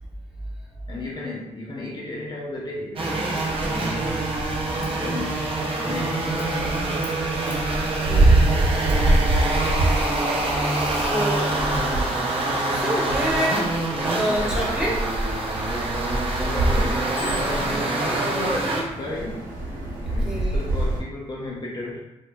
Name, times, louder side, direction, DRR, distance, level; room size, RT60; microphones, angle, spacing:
voice 1, 0.9-6.6 16.3-19.6 20.1-22.0, left 1 dB, 30° left, -4 dB, 0.6 m, -34 dB
sound 1, 3.0-18.8, right 2 dB, 45° right, 0.6 m, -25 dB
sound 2, 3.2-21.0, right 2 dB, 85° right, 0.8 m, -26 dB
voice 2, 8.0-8.5 10.7-11.6 12.7-15.0 20.1-20.6, right 1 dB, 5° right, -5 dB, 0.9 m, -28 dB
Bicycle bell, 14.8-16.5 16.9-18.5 19.2-19.4, equal, 90° left, 0.5 m, -36 dB
3.0 x 2.1 x 2.2 m, 0.95 s
cardioid pair, 75°, 14 cm